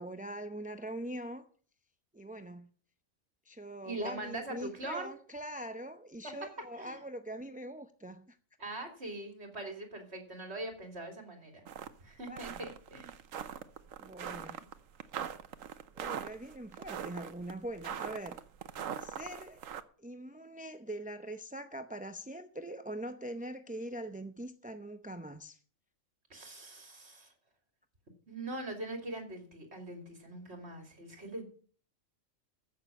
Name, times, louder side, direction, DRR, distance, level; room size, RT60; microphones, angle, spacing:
voice 1, 0.0-1.5 2.1-2.7 3.4-8.4 12.3-12.7 14.0-14.7 15.9-18.4 19.0-19.7 20.0-25.6, right 1 dB, 10° right, 0.4 m, -43 dB
voice 2, 3.8-5.1 6.2-6.3 6.8-7.0 8.6-11.6 12.0-13.1 26.3-27.3 28.3-31.4, right 2 dB, 55° right, 3.3 m, -42 dB
sound 1, 11.7-11.9 12.3-19.8, right 8 dB, 85° right, 1.2 m, -41 dB
15.0 x 6.7 x 7.3 m
omnidirectional pair, 1.3 m